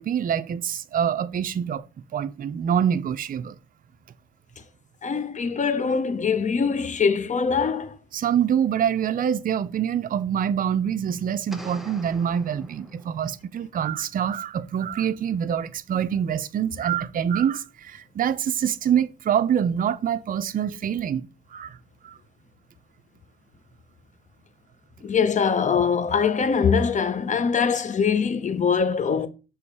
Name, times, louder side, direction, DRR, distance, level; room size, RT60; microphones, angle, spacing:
voice 1, 0.0-1.8 2.1-3.6 8.1-21.8 22.0-22.2, right 8 dB, 45° right, 0.5 m, -25 dB
voice 2, 5.0-8.0 25.0-29.3, left 6 dB, 40° left, 0.8 m, -23 dB
sound 1, 11.5-13.4, equal, ahead, 0.9 m, -43 dB
6.7 x 3.1 x 4.7 m
cardioid pair, 90°, 20 cm